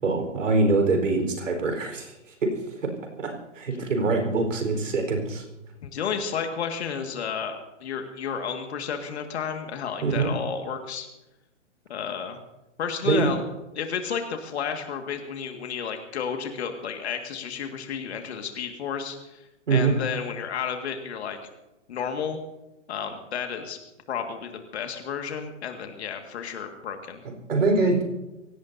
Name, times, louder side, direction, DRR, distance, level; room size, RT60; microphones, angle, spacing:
voice 1, 0.0-2.6 3.2-5.4 10.0-10.3 13.0-13.3 19.7-19.9 27.2-28.0, right 3 dB, 75° right, 4 dB, 4.6 m, -24 dB
voice 2, 5.8-11.1 11.9-12.4 12.8-13.4 13.7-21.4 21.9-22.4 22.9-23.8 24.1-27.2, left 7 dB, 60° left, 5 dB, 2.1 m, -32 dB
24.5 x 17.5 x 2.8 m, 1.0 s
hypercardioid pair, 135°, 38 cm